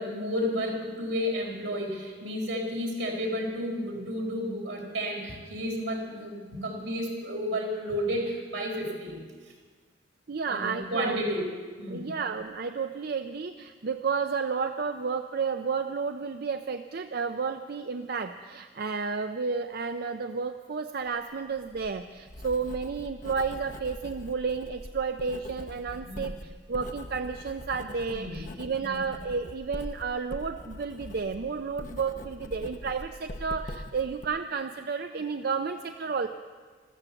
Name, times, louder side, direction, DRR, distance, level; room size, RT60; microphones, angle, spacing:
voice 1, 0.0-9.2 10.5-11.5 11.8-12.1 26.0-26.3 28.1-28.4 28.8-29.0, equal, 85° right, 0 dB, 4.4 m, -32 dB
voice 2, 10.3-11.2 11.9-36.3, right 5 dB, 55° right, 7 dB, 0.5 m, -32 dB
Writing, 21.5-34.3, left 1 dB, 45° left, 0.8 m, -43 dB
14.0 x 14.0 x 7.1 m, 1.5 s
head